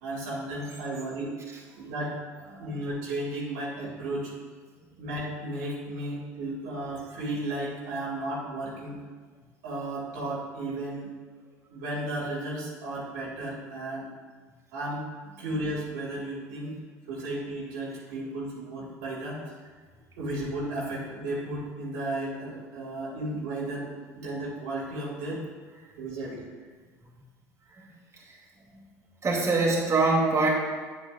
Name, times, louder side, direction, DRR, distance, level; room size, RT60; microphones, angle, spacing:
voice 1, 0.0-1.3 1.8-2.2 2.6-4.3 5.0-9.0 9.6-11.1 11.7-14.1 14.7-15.0 15.4-16.8 17.1-19.4 20.2-25.4 26.0-26.4, right 1 dB, 80° right, -5 dB, 2.5 m, -34 dB
voice 2, 2.5-2.8 27.8-27.9 28.3-28.4 28.7-28.9 29.2-30.5, right 3 dB, 35° right, -5 dB, 2.5 m, -24 dB
8.9 x 8.4 x 2.6 m, 1.5 s
hypercardioid pair, 70°, 9 cm